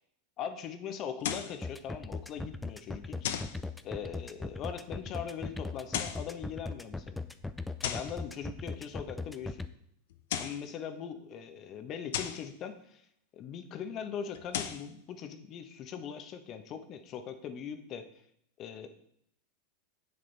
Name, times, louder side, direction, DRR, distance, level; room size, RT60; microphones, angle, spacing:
voice 1, 0.4-3.2 3.8-7.2 7.8-9.7 10.4-13.0 13.3-18.1 18.6-18.9, left 8 dB, 40° left, 9 dB, 1.0 m, -40 dB
sound 1, 1.2-1.6 3.2-3.6 5.8-6.3 7.8-8.2 10.1-10.7 12.1-12.5 14.3-14.9, left 10 dB, 70° left, 0.7 m, -35 dB
sound 2, 1.6-9.7, left 3 dB, 10° left, 0.5 m, -38 dB
8.4 x 6.9 x 4.1 m, 0.71 s
hypercardioid pair, 95°, 0 cm